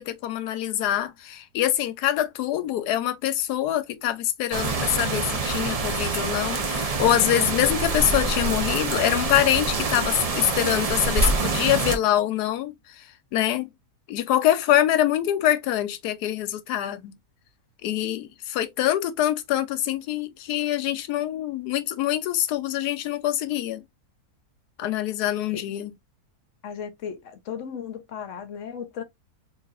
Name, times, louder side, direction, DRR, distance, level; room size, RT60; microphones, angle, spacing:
voice 1, 0.0-13.7 14.1-17.1 17.8-23.8 24.8-25.9, left 12 dB, 90° left, 1.2 m, -25 dB
sound 1, 4.5-12.0, right 3 dB, 60° right, 0.3 m, -26 dB
voice 2, 26.6-29.0, left 7 dB, 60° left, 0.9 m, -35 dB
4.0 x 3.0 x 2.4 m
omnidirectional pair, 1.6 m